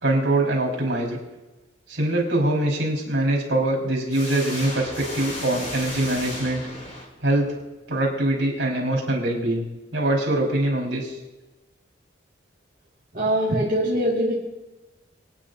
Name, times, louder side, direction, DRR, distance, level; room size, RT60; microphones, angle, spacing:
voice 1, 0.0-1.2 1.9-6.6 7.2-7.6 7.9-9.6 9.9-11.2, right 1 dB, 70° right, -2 dB, 4.9 m, -23 dB
sound 1, 4.1-7.5, left 1 dB, 35° left, 3.1 m, -34 dB
voice 2, 13.1-14.4, right 1 dB, 45° right, -7 dB, 2.0 m, -22 dB
25.0 x 9.8 x 2.8 m, 1.1 s
head